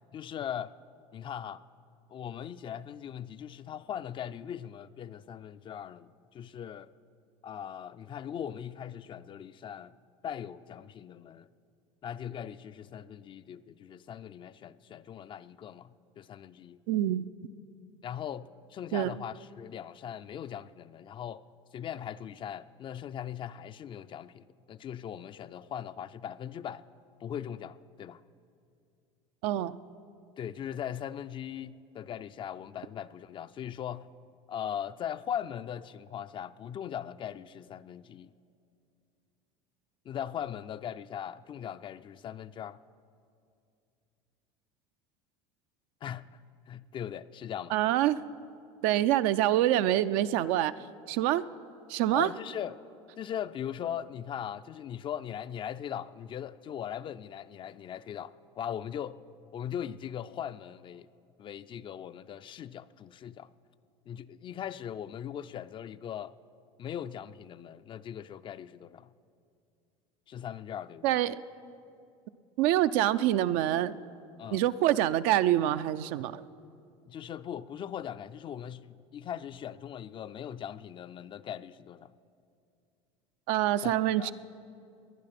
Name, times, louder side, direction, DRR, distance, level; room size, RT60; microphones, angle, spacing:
voice 1, 0.1-0.7 1.1-1.6 2.1-6.9 7.4-9.9 10.2-11.5 12.0-16.8 18.0-21.4 21.7-26.8 27.2-28.2 30.4-34.1 34.5-38.3 40.1-42.8 46.0-46.3 46.7-47.7 52.1-52.8 53.2-59.2 59.5-61.1 61.4-63.5 64.1-66.4 66.8-69.1 70.3-71.1 74.4-74.6 77.1-82.1 83.8-84.3, left 9 dB, 35° left, 0.4 m, -39 dB
voice 2, 16.9-17.3 18.9-19.1 29.4-29.8 47.7-48.2 48.8-50.7 51.1-51.4 51.9-52.3 71.0-71.4 72.6-73.9 74.5-76.4 83.5-84.3, right 13 dB, 65° right, 0.5 m, -26 dB
19.0 x 11.0 x 5.9 m
supercardioid pair, 95°, 15 cm